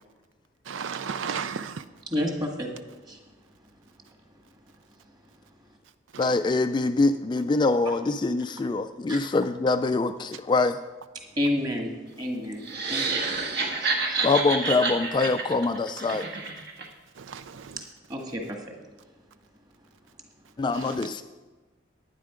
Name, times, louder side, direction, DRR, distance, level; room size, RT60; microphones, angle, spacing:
voice 1, 0.7-1.8 6.1-6.3 17.2-17.8 20.9-21.0, right 6 dB, 75° right, 0.4 m, -34 dB
voice 2, 2.1-2.7 3.0-3.2 7.8-7.9 9.1-9.2 11.4-13.1 13.8-14.3 17.8-17.9 18.1-18.6, left 1 dB, 20° right, 1.7 m, -30 dB
voice 3, 6.2-10.8 14.2-16.3 20.6-21.2, left 3 dB, 25° left, 0.3 m, -24 dB
sound 1, 12.6-16.9, right 3 dB, 55° right, 1.5 m, -29 dB
11.0 x 9.8 x 5.0 m
head